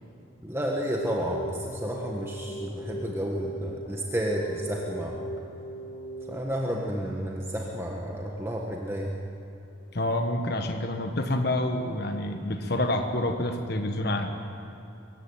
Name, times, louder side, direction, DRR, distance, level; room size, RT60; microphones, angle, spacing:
voice 1, 0.4-5.2 6.3-9.1, equal, 10° right, -1 dB, 1.5 m, -31 dB
Keyboard (musical), 1.0-6.4, right 1 dB, 75° left, 3.0 m, -39 dB
voice 2, 9.9-14.3, left 1 dB, 50° left, 5 dB, 1.4 m, -28 dB
24.0 x 15.0 x 9.0 m, 2.9 s
head